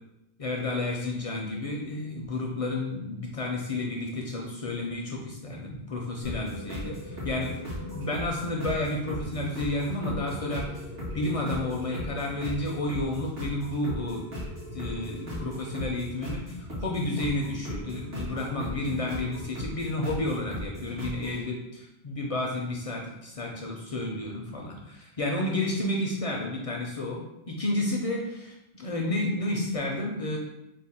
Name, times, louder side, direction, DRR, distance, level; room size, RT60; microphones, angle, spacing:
voice 1, 0.4-7.6 7.8-10.9 11.1-14.4 14.7-27.2 27.5-30.4, left 2 dB, 50° left, -1 dB, 0.4 m, -31 dB
sound 1, 6.2-21.4, equal, 80° right, 1.6 m, -37 dB
3.2 x 2.1 x 4.2 m, 0.88 s
omnidirectional pair, 1.0 m